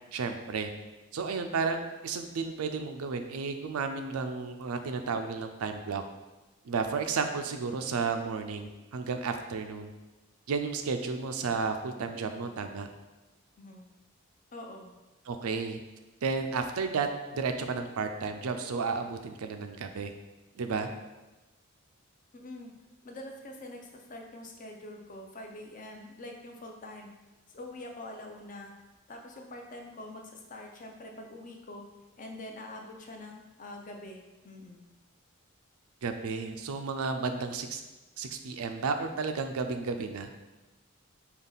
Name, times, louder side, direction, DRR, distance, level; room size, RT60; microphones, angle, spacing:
voice 1, 0.1-0.7 1.1-6.0 6.6-9.9 10.5-12.9 15.3-15.8 16.2-20.1 20.6-20.9 36.0-37.8 38.2-40.3, right 4 dB, 85° right, 6 dB, 0.4 m, -32 dB
voice 2, 14.5-14.9 22.3-22.7 23.0-27.1 27.5-28.7 29.1-31.9 32.2-34.8, left 1 dB, 35° left, 2 dB, 0.5 m, -45 dB
5.3 x 2.3 x 3.9 m, 1.1 s
head